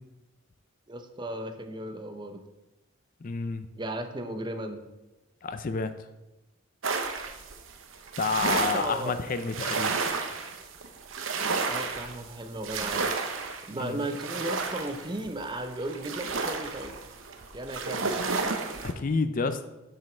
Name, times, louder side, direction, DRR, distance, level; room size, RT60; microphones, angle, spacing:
voice 1, 0.9-2.4 3.8-4.8 8.4-9.1 11.7-13.3 13.7-17.0 17.5-18.2, right 1 dB, 20° right, 7 dB, 0.7 m, -35 dB
voice 2, 3.2-3.7 5.4-5.9 8.2-10.0 13.8-14.0 18.8-19.6, left 4 dB, 40° left, 11 dB, 0.4 m, -29 dB
sound 1, 6.8-18.9, right 4 dB, 70° right, 0.8 m, -32 dB
7.5 x 5.3 x 6.1 m, 1.0 s
head